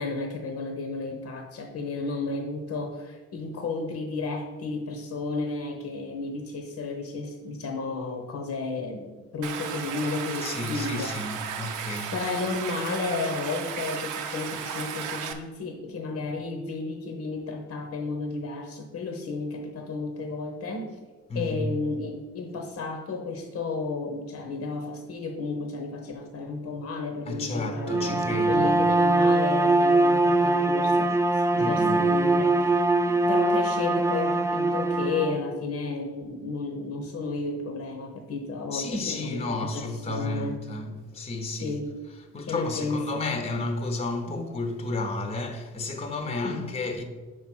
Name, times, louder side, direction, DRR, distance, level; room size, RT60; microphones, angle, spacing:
voice 1, 0.0-11.1 12.1-20.9 21.3-32.8 33.3-39.4 39.7-40.6 41.6-41.9 42.4-43.2 44.3-44.5 46.4-46.7, left 3 dB, 60° left, 0.9 m, -32 dB
Stream, 9.4-15.3, right 7 dB, 90° right, 0.7 m, -34 dB
voice 2, 10.4-12.1 21.3-21.8 27.3-28.8 31.6-32.1 38.7-41.8 42.3-47.0, left 2 dB, 20° left, 0.8 m, -32 dB
Bowed string instrument, 27.8-35.4, right 2 dB, 10° right, 0.4 m, -22 dB
5.1 x 4.6 x 6.0 m
cardioid pair, 90°, 30 cm